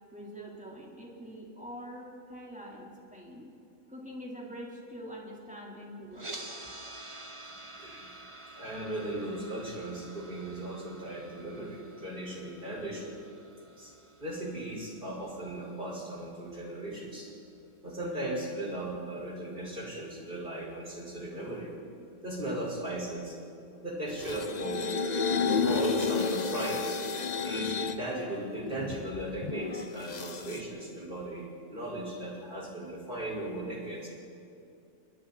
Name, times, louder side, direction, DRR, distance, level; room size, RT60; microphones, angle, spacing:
voice 1, 0.1-3.5 3.9-6.4, equal, 5° right, -3 dB, 4.2 m, -44 dB
sound 1, 6.1-16.2, right 2 dB, 20° right, 1.6 m, -48 dB
voice 2, 7.8-8.2 8.6-13.2 13.8-13.9 14.2-17.3 17.8-21.7 22.2-23.4 23.8-24.9 25.6-26.8 27.3-34.1, right 1 dB, 40° right, -3 dB, 5.7 m, -37 dB
sound 2, 24.1-28.0 28.5-30.6, left 4 dB, 35° left, 0.8 m, -31 dB
29.0 x 22.0 x 4.4 m, 2.6 s
omnidirectional pair, 1.5 m